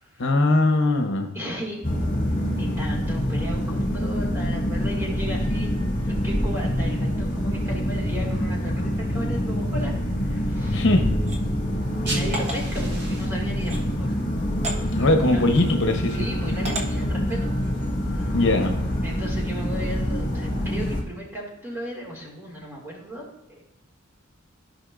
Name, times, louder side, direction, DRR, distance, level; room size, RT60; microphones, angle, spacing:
voice 1, 0.2-1.3 10.7-11.0 14.9-16.2 18.3-18.8, left 2 dB, 60° left, 5 dB, 0.9 m, -20 dB
voice 2, 1.3-1.8 2.6-9.9 10.2-10.8 12.0-14.1 15.3-15.4 16.1-17.5 18.1-18.4 19.0-23.6, equal, 10° right, -3 dB, 2.2 m, -36 dB
sound 1, 1.8-21.0, equal, 35° left, 2.3 m, -26 dB
sound 2, 11.2-11.4 12.3-12.6 13.6-13.8 14.6-14.8 15.5-15.7 16.6-16.9, right 1 dB, 35° right, 1.2 m, -31 dB
sound 3, 11.8-17.0, right 2 dB, 55° right, 1.8 m, -41 dB
14.5 x 5.4 x 2.5 m, 0.92 s
head